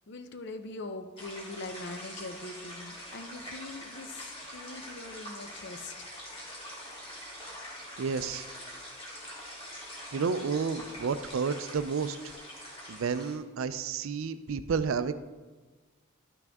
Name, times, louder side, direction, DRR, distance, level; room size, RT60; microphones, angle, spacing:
voice 1, 0.1-6.1 10.2-10.5, left 2 dB, 55° left, 8 dB, 0.7 m, -42 dB
sound 1, 1.2-13.4, equal, 25° left, 2.0 m, -44 dB
voice 2, 8.0-8.5 10.1-12.3 12.9-15.1, right 5 dB, 70° right, 12 dB, 0.4 m, -31 dB
12.0 x 6.1 x 3.5 m, 1.3 s
head